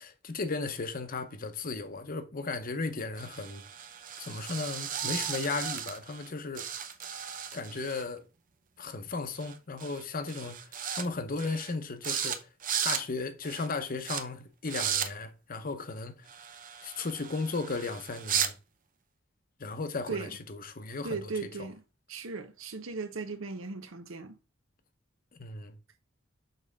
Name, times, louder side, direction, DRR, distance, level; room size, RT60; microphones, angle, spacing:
voice 1, 0.0-3.6 4.2-6.7 7.5-8.3 8.8-12.5 12.8-16.3 16.8-18.5 19.6-21.7 25.3-25.8, left 3 dB, 45° left, 0.8 m, -35 dB
sound 1, 3.2-6.3 6.6-8.0 9.4-9.5 9.8-10.0 10.3-11.1 11.4-11.7 12.0-12.4 12.6-13.0 13.4-13.7 14.1-14.2 14.7-15.1 16.3-18.5, right 8 dB, 45° right, 0.7 m, -35 dB
voice 2, 21.0-21.8 22.1-24.4, right 4 dB, 75° right, 0.8 m, -37 dB
6.6 x 4.3 x 3.6 m
head